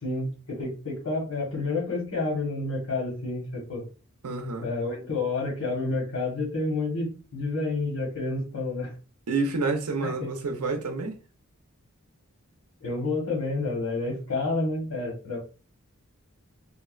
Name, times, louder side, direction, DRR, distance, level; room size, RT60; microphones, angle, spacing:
voice 1, 0.0-3.8 4.6-8.9 10.0-10.3 12.8-15.4, left 3 dB, 80° left, 1.0 m, -29 dB
voice 2, 4.2-4.7 9.3-11.1, right 3 dB, 90° right, 0.6 m, -28 dB
3.4 x 2.1 x 2.3 m
head